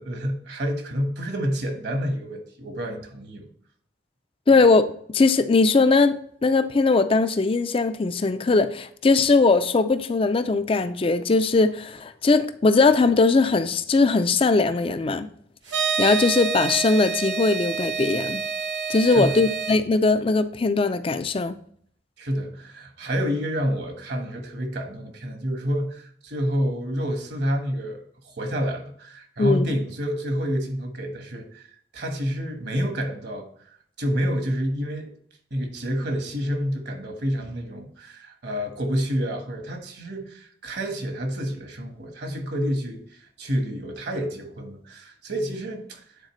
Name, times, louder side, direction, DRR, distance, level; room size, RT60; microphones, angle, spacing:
voice 1, 0.0-3.5 19.1-19.4 22.2-31.7 31.9-33.5 34.0-35.1 35.5-46.0, equal, 65° right, 1.4 m, -28 dB
voice 2, 4.5-6.2 6.4-15.3 16.0-18.4 18.9-21.6 29.4-29.7, left 3 dB, 30° left, 0.4 m, -20 dB
sound 1, 15.7-19.8, right 6 dB, 85° right, 1.1 m, -28 dB
9.1 x 4.0 x 3.1 m
head